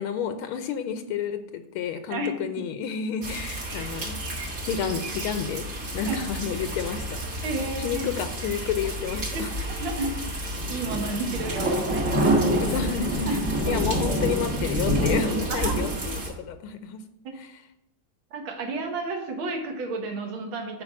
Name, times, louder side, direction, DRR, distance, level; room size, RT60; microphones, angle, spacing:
voice 1, 0.0-4.2 4.6-5.7 5.9-7.2 7.8-9.5 12.6-17.0 17.4-17.5, left 7 dB, 85° left, 9 dB, 1.6 m, -30 dB
sound 1, 3.2-16.3, right 1 dB, 40° right, 1.7 m, -28 dB
voice 2, 7.4-8.0 9.3-10.1 10.7-12.6 13.3-13.4 15.5-15.7 18.3-20.8, right 3 dB, 70° right, 3 dB, 2.1 m, -31 dB
8.8 x 4.9 x 6.1 m, 0.84 s
omnidirectional pair, 2.3 m